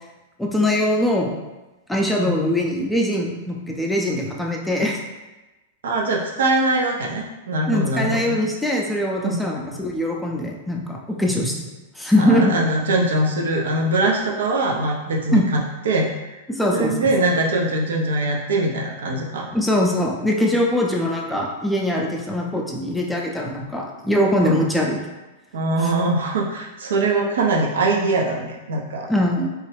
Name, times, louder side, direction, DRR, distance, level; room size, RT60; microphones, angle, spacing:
voice 1, 0.4-1.3 1.9-5.0 7.7-11.6 12.0-12.5 15.3-15.5 16.5-17.1 19.5-25.0 29.1-29.5, left 1 dB, 5° left, -1 dB, 0.5 m, -22 dB
voice 2, 5.8-8.4 9.2-9.4 12.2-16.1 16.7-19.5 24.4-24.6 25.5-29.1, right 2 dB, 65° right, 0 dB, 0.5 m, -22 dB
3.0 x 2.2 x 3.2 m, 1.1 s
figure-of-eight pair, 95°, 0 cm